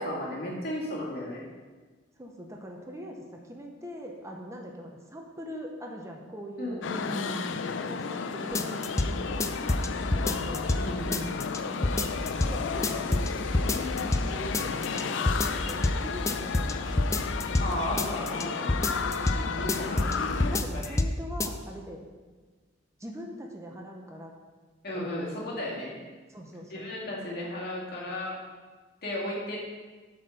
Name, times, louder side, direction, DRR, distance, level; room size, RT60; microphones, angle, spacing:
voice 1, 0.0-1.5 6.6-7.4 10.8-11.3 13.1-13.2 17.6-18.8 19.3-21.0 24.8-26.0 26.7-28.4 29.0-29.7, left 1 dB, 55° left, -5 dB, 2.2 m, -34 dB
voice 2, 2.2-3.2 3.5-6.8 7.8-10.7 11.7-12.0 12.5-16.8 19.5-19.7 20.5-22.0 23.0-24.3 24.9-25.1 26.3-26.9, equal, 15° right, 0 dB, 0.8 m, -42 dB
sound 1, 6.8-20.6, left 5 dB, 85° left, 0.5 m, -33 dB
sound 2, 8.6-9.1 9.4-10.8 11.1-11.6 11.8-12.5 12.8-13.3 13.5-14.3 14.5-15.0 15.3-16.0 16.3-17.7 18.0-18.4 18.7-19.4 19.7-20.2 20.4-21.1 21.4-21.5, left 2 dB, 15° left, 0.4 m, -26 dB
8.4 x 4.3 x 6.4 m, 1.4 s
head